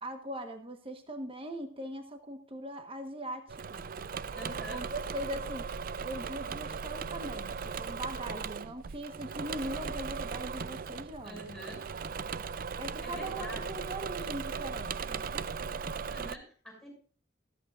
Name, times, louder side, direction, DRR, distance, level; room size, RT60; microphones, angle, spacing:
voice 1, 0.0-3.9 4.7-5.7 6.0-11.4 12.8-15.5, right 1 dB, 30° right, 6 dB, 1.2 m, -40 dB
Engine / Mechanisms, 3.5-16.4, right 6 dB, 45° right, 0.4 m, -38 dB
voice 2, 4.3-4.9 8.2-8.8 11.2-11.8 13.0-13.8 16.0-16.9, equal, ahead, -1 dB, 6.2 m, -46 dB
14.5 x 14.0 x 2.5 m, 0.42 s
head